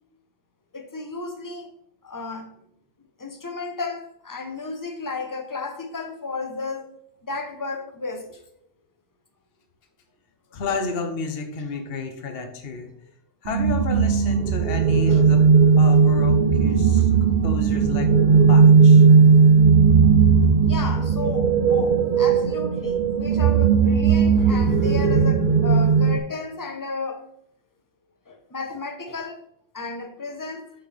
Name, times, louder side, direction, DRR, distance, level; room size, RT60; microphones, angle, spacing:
voice 1, 0.7-1.7 2.0-2.5 3.2-6.9 7.2-8.4 12.3-12.5 15.1-15.2 17.1-17.2 20.7-27.3 28.3-29.4 29.7-30.6, left 3 dB, 20° left, 0.8 m, -33 dB
voice 2, 10.5-12.9 13.4-15.5 15.8-19.1, left 4 dB, 55° left, 1.1 m, -32 dB
sound 1, 13.5-26.2, right 5 dB, 50° right, 0.6 m, -17 dB
8.1 x 6.2 x 3.4 m
omnidirectional pair, 1.2 m